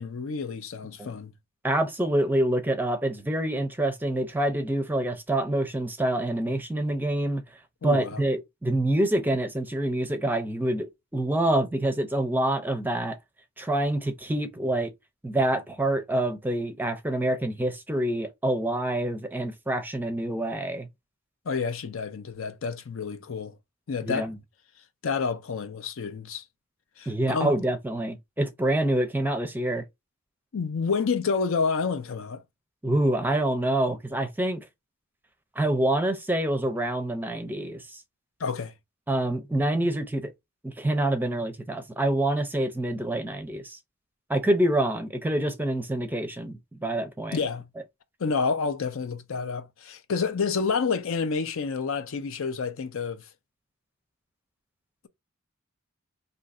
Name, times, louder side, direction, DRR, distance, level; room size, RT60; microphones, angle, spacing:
voice 1, 0.0-1.3 7.8-8.2 21.5-23.6 23.9-24.3 25.0-26.4 27.0-27.6 30.5-32.4 38.4-38.7 47.3-47.7 48.2-53.3, left 5 dB, 65° left, 0.5 m, -29 dB
voice 2, 1.6-7.4 7.8-13.2 13.6-14.9 15.2-20.9 24.0-24.4 27.1-29.8 32.8-34.7 35.6-38.0 39.1-40.3 40.6-43.8 44.3-47.4, right 1 dB, 10° right, 0.5 m, -26 dB
2.8 x 2.5 x 4.0 m
head